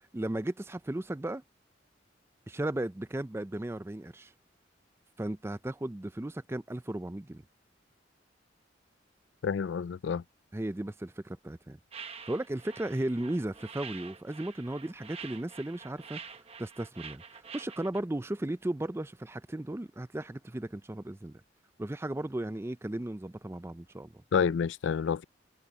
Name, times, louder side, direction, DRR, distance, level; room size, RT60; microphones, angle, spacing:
voice 1, 0.1-1.4 2.5-4.3 5.2-7.4 10.5-16.2 16.6-21.4 21.8-24.2, right 1 dB, 15° right, 0.4 m, -35 dB
voice 2, 9.4-10.2 24.3-25.2, left 6 dB, 75° left, 0.4 m, -28 dB
sound 1, 11.9-18.0, right 6 dB, 30° right, 0.9 m, -47 dB
head